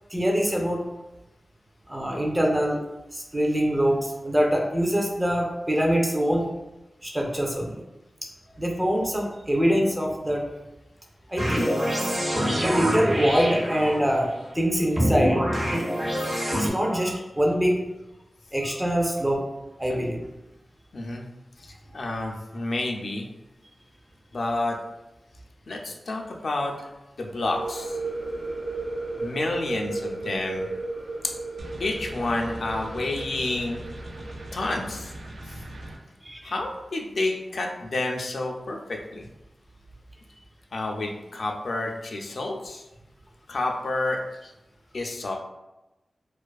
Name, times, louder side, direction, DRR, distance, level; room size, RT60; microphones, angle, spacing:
voice 1, 0.1-0.8 1.9-2.8 3.1-6.5 7.0-7.8 8.2-8.3 8.6-10.5 11.3-11.7 12.6-14.3 14.5-15.4 15.7-15.9 16.5-17.8 18.5-19.4 19.8-20.2 36.2-36.5, equal, 15° right, 0 dB, 0.4 m, -24 dB
sound 1, 11.4-14.2 15.0-16.7, equal, 40° right, 0.8 m, -25 dB
voice 2, 20.9-21.2 21.6-23.3 24.3-24.8 25.7-26.9 27.2-28.0 29.2-30.7 31.2-31.3 31.8-33.8 34.5-35.1 36.4-39.3 40.7-42.8 43.5-44.5 44.9-45.4, left 2 dB, 70° left, 1 dB, 0.3 m, -29 dB
sound 2, 27.2-34.8, right 2 dB, 70° right, 0.9 m, -35 dB
sound 3, 31.6-36.0, right 1 dB, 90° right, 0.3 m, -40 dB
2.4 x 2.3 x 2.3 m, 0.99 s
wide cardioid pair, 105°, 0 cm